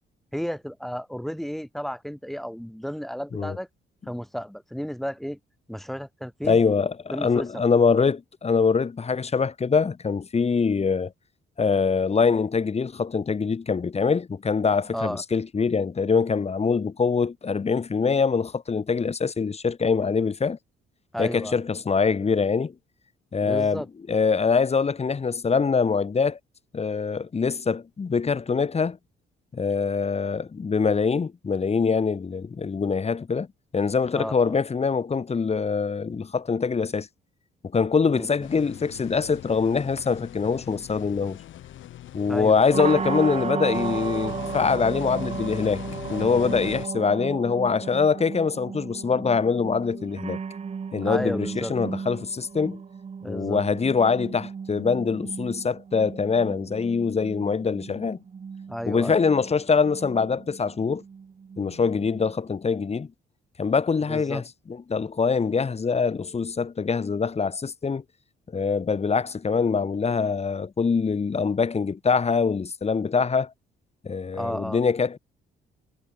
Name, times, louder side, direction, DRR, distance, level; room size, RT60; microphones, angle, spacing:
voice 1, 0.3-3.7 4.1-5.4 5.7-6.6 7.1-7.5 14.9-15.2 21.1-21.6 23.4-23.9 34.1-34.6 38.1-38.3 42.3-42.6 51.0-51.7 53.2-53.6 58.7-59.2 64.1-64.4 74.3-74.8, equal, ahead, 2.5 m, -33 dB
voice 2, 6.4-11.1 11.6-20.6 21.2-22.7 23.3-26.4 26.7-29.0 29.5-33.5 33.7-37.1 37.7-41.4 42.1-45.8 46.1-50.4 50.9-52.8 53.3-58.2 58.8-61.0 61.6-63.1 63.6-68.0 68.5-73.5 74.0-75.2, left 5 dB, 30° left, 1.8 m, -24 dB
sound 1, 38.4-46.9, left 13 dB, 75° left, 1.5 m, -40 dB
sound 2, 42.7-62.5, right 6 dB, 30° right, 0.9 m, -35 dB
cardioid pair, 90°, 20 cm